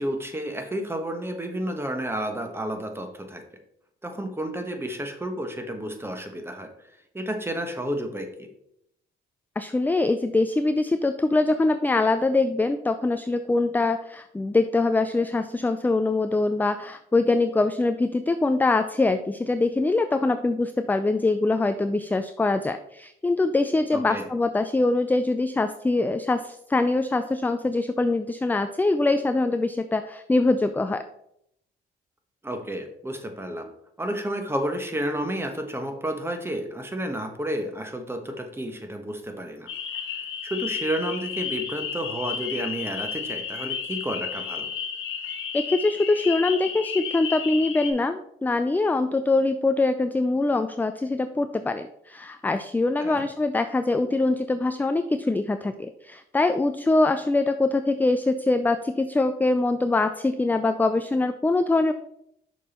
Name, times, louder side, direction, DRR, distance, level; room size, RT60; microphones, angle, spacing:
voice 1, 0.0-3.4 4.0-6.7 7.1-8.5 23.9-24.3 32.4-33.7 34.0-39.7 40.4-44.7 53.0-53.3, right 1 dB, 10° right, 5 dB, 1.2 m, -31 dB
voice 2, 9.6-31.0 45.5-61.9, left 2 dB, 10° left, 9 dB, 0.4 m, -23 dB
sound 1, 39.7-47.9, left 7 dB, 85° left, 1.3 m, -32 dB
6.5 x 5.3 x 4.3 m, 0.75 s
cardioid pair, 90°, 20 cm